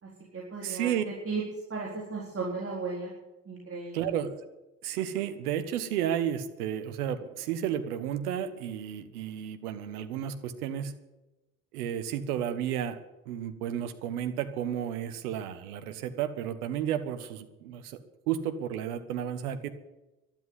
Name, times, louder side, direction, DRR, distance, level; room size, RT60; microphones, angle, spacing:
voice 1, 0.0-1.4 1.7-3.1 3.5-4.1, right 4 dB, 30° right, -4 dB, 4.0 m, -36 dB
voice 2, 0.6-1.0 3.9-4.4 4.8-10.9 11.7-13.0 13.2-19.7, right 10 dB, 75° right, 10 dB, 1.3 m, -32 dB
12.0 x 10.5 x 9.6 m, 1.0 s
figure-of-eight pair, 50°, 45 cm